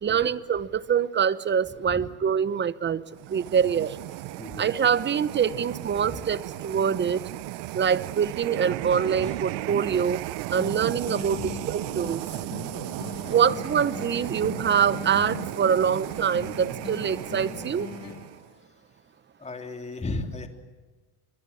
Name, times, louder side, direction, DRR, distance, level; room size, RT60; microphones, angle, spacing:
voice 1, 0.0-3.0 3.3-4.0 4.6-7.2 7.7-10.2 10.5-12.2 13.3-17.9, right 7 dB, 25° right, 16 dB, 0.9 m, -25 dB
sound 1, 3.1-18.5, right 19 dB, 65° right, 0.8 m, -35 dB
voice 2, 4.4-4.7 5.9-6.2 9.1-9.4 11.4-11.5 13.2-13.4 19.4-20.5, left 2 dB, 15° left, 4 dB, 3.1 m, -36 dB
sound 2, 10.6-18.6, left 8 dB, 35° left, 1.5 m, -40 dB
26.0 x 22.0 x 7.3 m, 1.3 s
supercardioid pair, 115°, 45 cm